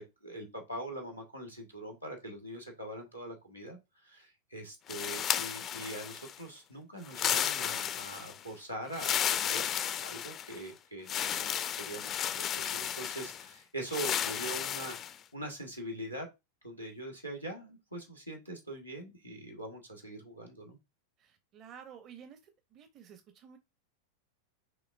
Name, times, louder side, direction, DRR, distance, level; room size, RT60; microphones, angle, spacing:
voice 1, 0.0-9.6 9.9-16.3 16.6-20.8, right 1 dB, 90° right, 1.3 m, -43 dB
sound 1, 4.9-6.4 7.1-8.4 8.9-10.6 11.1-13.5 13.9-15.1, left 9 dB, 30° left, 0.3 m, -33 dB
voice 2, 21.2-22.4 22.7-23.6, right 8 dB, 35° right, 0.6 m, -52 dB
5.9 x 3.0 x 2.4 m
figure-of-eight pair, 90°, 0 cm